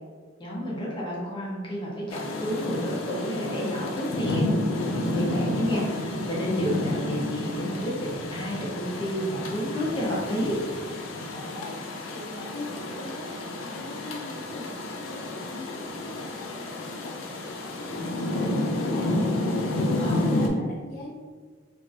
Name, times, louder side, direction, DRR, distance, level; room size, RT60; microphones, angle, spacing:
voice 1, 0.4-4.4 4.8-10.6 20.0-20.3, equal, 25° left, -5 dB, 0.6 m, -31 dB
Rain, 2.1-20.5, left 1 dB, 90° left, 0.4 m, -30 dB
voice 2, 11.3-11.8 12.0-21.1, left 1 dB, 50° left, -4 dB, 0.9 m, -42 dB
3.5 x 2.5 x 2.4 m, 1.5 s
head